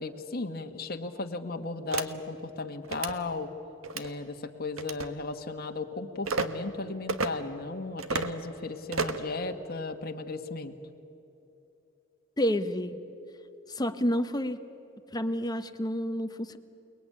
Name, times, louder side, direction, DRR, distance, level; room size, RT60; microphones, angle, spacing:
voice 1, 0.0-3.5 3.9-10.7, left 3 dB, 50° left, 5 dB, 1.6 m, -35 dB
sound 1, 1.9-2.1 2.8-3.1 3.8-4.1 4.8-5.1 6.2-6.5 7.1-7.3 8.0-8.3 8.9-9.3, right 4 dB, 90° right, 1.4 m, -30 dB
voice 2, 12.4-13.0 13.7-14.6 15.1-16.6, equal, 20° left, 8 dB, 1.2 m, -29 dB
29.0 x 20.5 x 9.8 m, 2.9 s
head